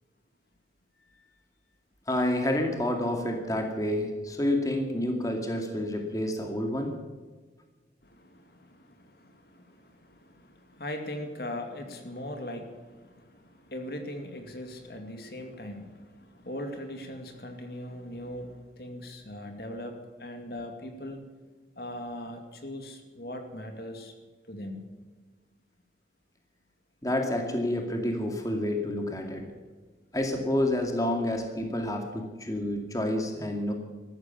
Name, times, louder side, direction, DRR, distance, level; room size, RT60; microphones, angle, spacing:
voice 1, 2.1-7.0 27.0-29.4 30.1-33.7, left 1 dB, 20° left, 3 dB, 2.3 m, -29 dB
voice 2, 8.0-21.2 21.8-24.1 24.5-24.8, left 1 dB, 55° left, 5 dB, 2.3 m, -40 dB
14.5 x 13.5 x 7.1 m, 1.3 s
head